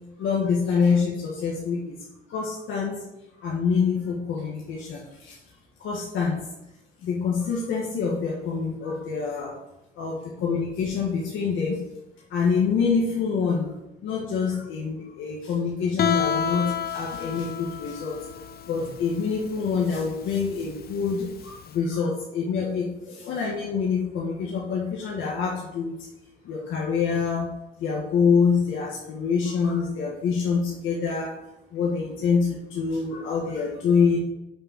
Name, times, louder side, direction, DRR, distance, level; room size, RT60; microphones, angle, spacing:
voice 1, 0.2-2.0 2.3-3.0 3.4-5.4 5.8-6.4 7.0-9.5 10.0-11.8 12.3-13.7 14.0-18.2 18.7-25.9 26.4-27.5 27.8-31.3 31.7-34.2, left 5 dB, 80° left, -3 dB, 1.5 m, -26 dB
Guitar, 16.0-21.7, left 7 dB, 50° left, 0.5 m, -30 dB
6.5 x 4.7 x 5.7 m, 0.88 s
cardioid pair, 90°, 20 cm